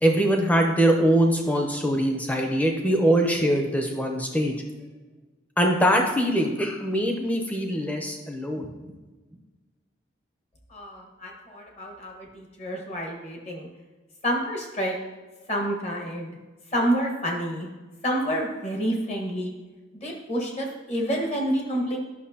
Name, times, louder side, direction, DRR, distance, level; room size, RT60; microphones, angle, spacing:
voice 1, 0.0-4.5 5.6-8.7, equal, 10° left, 2 dB, 0.8 m, -22 dB
voice 2, 10.7-13.7 14.2-15.0 15.5-16.3 16.7-17.7 18.0-19.5 20.0-22.0, equal, 35° left, 0 dB, 1.4 m, -28 dB
10.5 x 6.0 x 2.8 m, 1.3 s
head